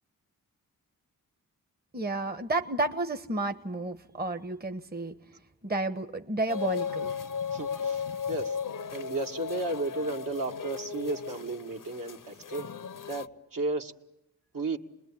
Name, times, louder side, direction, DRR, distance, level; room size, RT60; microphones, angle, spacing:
voice 1, 1.9-5.1 5.6-7.1, right 2 dB, 25° right, 6 dB, 1.3 m, -31 dB
sound 1, 6.5-13.3, left 6 dB, 55° left, 0.9 m, -36 dB
voice 2, 7.5-8.6 8.9-12.7 13.1-13.9 14.5-14.8, right 2 dB, 60° right, 2 dB, 2.1 m, -33 dB
27.5 x 21.0 x 8.7 m, 0.84 s
cardioid pair, 45°, 37 cm